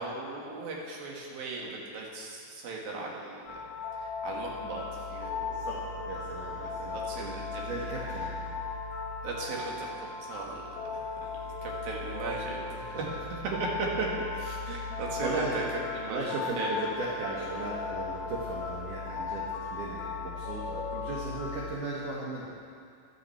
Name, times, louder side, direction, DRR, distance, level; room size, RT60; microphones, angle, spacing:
voice 1, 0.0-3.6 4.0-5.7 6.6-7.8 9.2-10.6 10.9-11.1 11.6-13.1 14.0-14.1 14.3-15.6 15.9-16.2 16.6-16.8, right 3 dB, 60° right, -3 dB, 3.0 m, -38 dB
sound 1, 3.5-21.8, left 4 dB, 70° left, 5.4 m, -37 dB
voice 2, 5.6-8.5 12.9-13.0 15.2-15.6 16.1-22.5, right 2 dB, 80° right, -5 dB, 1.8 m, -37 dB
15.5 x 11.0 x 4.5 m, 2.4 s
omnidirectional pair, 5.8 m